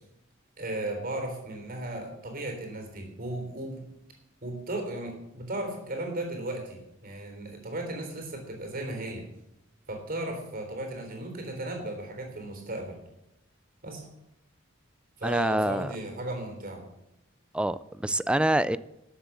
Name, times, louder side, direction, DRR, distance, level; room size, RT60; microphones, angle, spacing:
voice 1, 0.6-3.8 4.4-9.2 9.9-13.0 13.8-14.1 15.2-16.8, right 1 dB, 45° right, 4 dB, 3.6 m, -35 dB
voice 2, 15.2-15.9 17.5-18.8, right 1 dB, 5° right, 17 dB, 0.3 m, -26 dB
13.0 x 7.5 x 7.3 m, 0.87 s
head